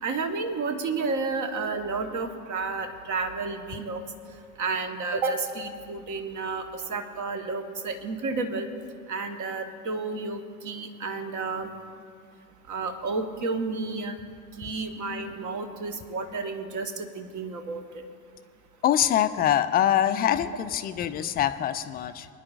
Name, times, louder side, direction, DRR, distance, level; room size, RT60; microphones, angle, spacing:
voice 1, 0.0-4.0 4.6-8.7 9.1-11.7 12.7-14.2 14.6-17.8, right 3 dB, 40° right, 6 dB, 1.2 m, -31 dB
voice 2, 18.8-22.3, left 11 dB, 20° left, 11 dB, 0.4 m, -24 dB
23.0 x 10.0 x 2.4 m, 2.2 s
figure-of-eight pair, 65°, 47 cm